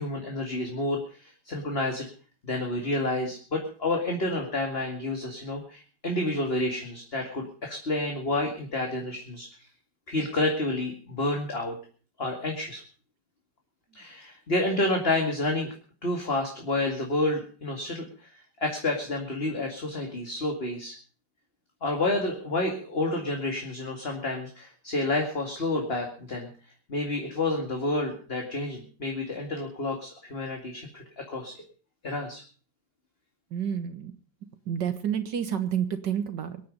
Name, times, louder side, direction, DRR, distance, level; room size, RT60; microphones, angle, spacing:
voice 1, 0.0-2.1 2.4-9.5 10.1-11.8 12.2-12.8 14.0-15.7 16.0-18.0 18.6-21.0 21.8-26.5 26.9-31.5 32.0-32.4, left 2 dB, 30° left, 2 dB, 2.5 m, -29 dB
voice 2, 33.5-34.1 34.7-36.6, right 8 dB, 70° right, 9 dB, 1.9 m, -29 dB
23.5 x 9.5 x 5.2 m, 0.41 s
omnidirectional pair, 2.0 m